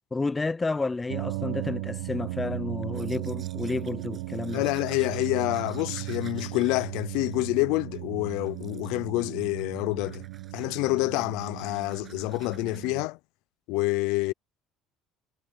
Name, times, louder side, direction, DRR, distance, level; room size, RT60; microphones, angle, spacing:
voice 1, 0.1-4.6, left 3 dB, 20° left, 0.7 m, -31 dB
sound 1, 1.1-13.1, right 18 dB, 85° right, 1.2 m, -36 dB
Domestic sounds home sounds, 2.8-8.0 8.4-9.1 9.4-9.7 10.0-12.9, right 7 dB, 40° right, 7.4 m, -54 dB
voice 2, 4.5-10.2 10.5-13.2 13.7-14.3, left 23 dB, 75° left, 0.5 m, -27 dB
supercardioid pair, 85°, 0 cm